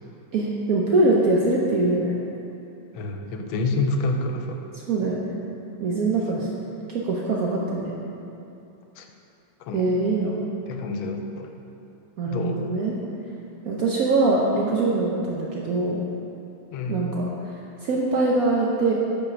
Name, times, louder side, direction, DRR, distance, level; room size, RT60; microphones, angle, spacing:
voice 1, 0.3-2.1 4.9-5.4 5.8-6.5 6.9-7.9 9.7-10.4 12.2-12.9 13.6-16.0 16.9-17.3 17.8-18.9, right 2 dB, 70° right, -3 dB, 0.8 m, -23 dB
voice 2, 2.9-4.6 6.4-6.5 9.0-9.1 9.6-9.9 10.7-11.5 12.2-12.6 16.7-17.0, left 2 dB, 90° left, 4 dB, 1.4 m, -28 dB
5.3 x 4.8 x 6.0 m, 2.8 s
omnidirectional pair, 2.1 m